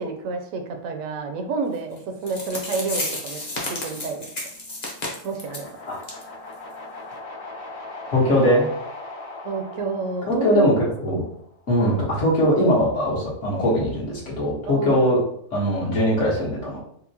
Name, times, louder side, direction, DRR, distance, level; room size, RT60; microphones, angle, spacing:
voice 1, 0.0-3.4 3.7-4.3 5.2-5.7 9.4-10.6 11.1-11.2 14.7-14.9, right 4 dB, 80° right, 4 dB, 1.0 m, -29 dB
sound 1, 2.0-2.1 2.3-5.7 6.0-6.2 6.5-6.6 7.1-7.2, left 2 dB, 40° left, 0.8 m, -31 dB
sound 2, 5.3-11.5, left 2 dB, 80° left, 1.3 m, -39 dB
voice 2, 8.1-8.7 10.3-11.2 11.7-15.2 15.5-16.8, equal, 65° left, -5 dB, 1.5 m, -21 dB
4.3 x 2.1 x 2.7 m, 0.66 s
omnidirectional pair, 1.4 m